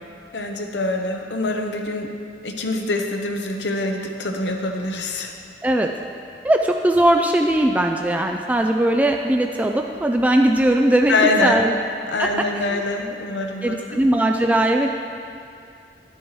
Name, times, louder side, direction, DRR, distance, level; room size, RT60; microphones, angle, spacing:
voice 1, 0.3-2.1 2.4-5.3 11.1-11.6 12.1-14.1, left 2 dB, 75° left, 3 dB, 0.9 m, -24 dB
voice 2, 6.4-11.1 11.4-11.7 12.2-12.8 13.6-14.9, right 1 dB, 10° right, 2 dB, 0.3 m, -19 dB
11.0 x 8.7 x 3.2 m, 2.5 s
head